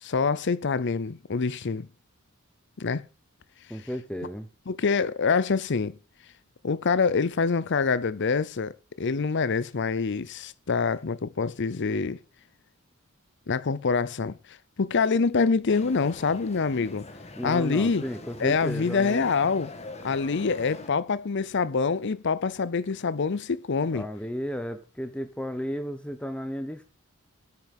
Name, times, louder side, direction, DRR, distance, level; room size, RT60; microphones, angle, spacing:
voice 1, 0.0-1.9 2.8-3.0 4.7-6.0 6.6-12.2 13.5-17.1 17.4-18.0 18.4-19.7 20.0-24.1, left 4 dB, 55° left, 0.6 m, -26 dB
voice 2, 3.7-4.5 17.4-19.3 23.9-26.8, equal, 5° left, 1.0 m, -34 dB
sound 1, 15.7-20.9, left 2 dB, 30° left, 1.8 m, -43 dB
9.6 x 9.0 x 7.3 m
head